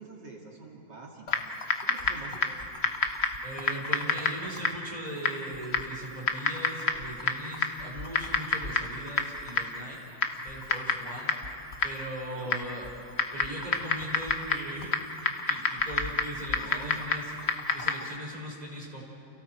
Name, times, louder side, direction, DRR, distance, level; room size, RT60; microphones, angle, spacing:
voice 1, 0.0-2.6 12.3-12.6 16.5-16.9, right 3 dB, 65° right, -1 dB, 3.0 m, -47 dB
Typing, 1.3-18.2, left 4 dB, 40° left, 1.3 m, -31 dB
voice 2, 3.4-10.0 10.4-11.3 11.8-12.9 13.3-15.1 15.5-17.3 17.7-19.0, right 1 dB, 20° right, -3 dB, 5.2 m, -39 dB
30.0 x 30.0 x 4.7 m, 2.9 s
omnidirectional pair, 2.1 m